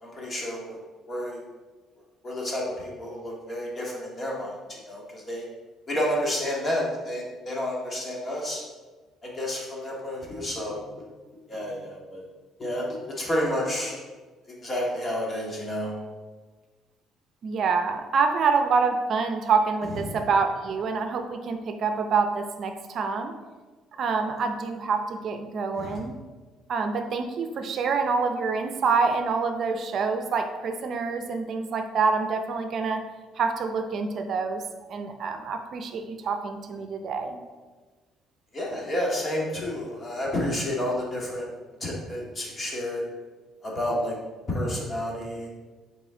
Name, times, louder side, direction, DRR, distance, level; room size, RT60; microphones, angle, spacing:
voice 1, 0.0-0.8 1.1-1.4 2.2-5.5 5.9-8.6 9.2-10.8 11.5-12.2 12.6-14.0 14.6-15.9 20.1-20.2 25.8-26.0 38.5-41.5 41.8-43.1 43.6-44.2 44.5-45.5, left 1 dB, 30° left, -3 dB, 1.9 m, -30 dB
voice 2, 17.4-23.3 24.0-26.1 26.7-33.0 33.4-34.6 34.9-37.4, right 5 dB, 55° right, 6 dB, 0.6 m, -26 dB
6.8 x 4.3 x 3.8 m, 1.3 s
cardioid pair, 90°, 0 cm